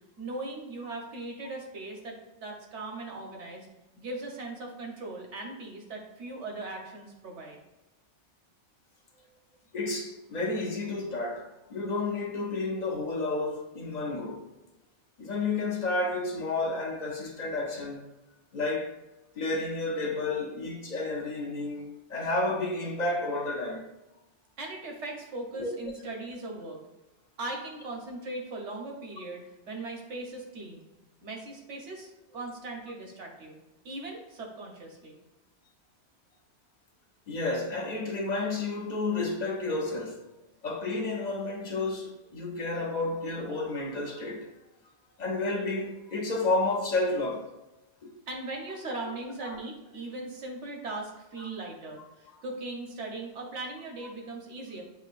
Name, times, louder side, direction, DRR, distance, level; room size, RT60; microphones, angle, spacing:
voice 1, 0.2-3.7 4.0-7.6 24.6-26.8 27.4-30.9 31.2-33.6 33.8-35.2 48.3-54.8, right 2 dB, 80° right, 1.3 m, -39 dB
voice 2, 9.7-14.4 15.2-18.0 18.5-19.0 19.4-23.9 25.5-25.8 37.3-40.2 40.6-44.5 45.2-47.5 48.0-48.2 49.4-49.6, left 2 dB, 45° left, 0.6 m, -31 dB
7.8 x 2.6 x 2.5 m
omnidirectional pair, 1.2 m